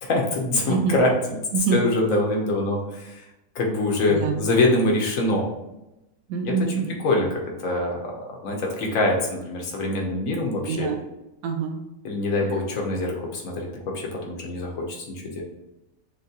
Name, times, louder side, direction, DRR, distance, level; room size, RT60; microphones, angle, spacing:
voice 1, 0.0-1.4 1.7-3.2 3.5-5.5 6.4-6.7 7.0-8.0 8.4-10.9 12.0-15.4, left 2 dB, 70° left, 0 dB, 1.2 m, -24 dB
voice 2, 6.3-6.8 10.7-11.0 11.4-11.8, right 6 dB, 75° right, 4 dB, 1.0 m, -25 dB
6.3 x 2.2 x 2.8 m, 0.94 s
omnidirectional pair, 1.5 m